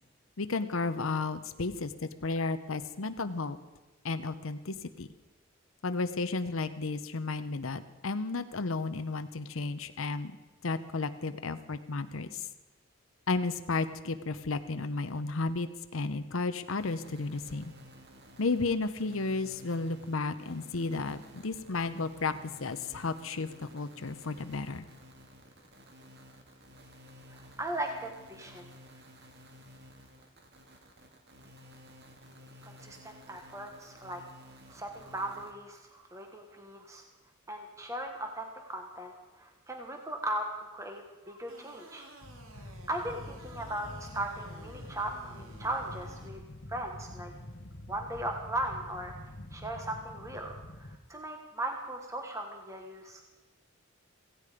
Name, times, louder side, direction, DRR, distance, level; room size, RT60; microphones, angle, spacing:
voice 1, 0.4-3.6 4.0-5.1 5.8-10.4 10.6-12.5 13.3-17.7 18.4-24.8, left 3 dB, 85° left, 10 dB, 0.8 m, -33 dB
sound 1, 16.8-35.5, equal, 55° right, 2.1 m, -54 dB
voice 2, 27.3-28.7 32.6-34.2 34.7-37.0 37.5-42.1 42.9-46.4 46.7-47.3 47.9-53.2, right 1 dB, 15° right, 3 dB, 1.3 m, -38 dB
game over, 41.5-46.3, right 2 dB, 90° right, 2.5 m, -53 dB
sound 2, 42.2-51.0, left 1 dB, 55° left, 1.2 m, -46 dB
16.5 x 16.0 x 5.1 m, 1.1 s
head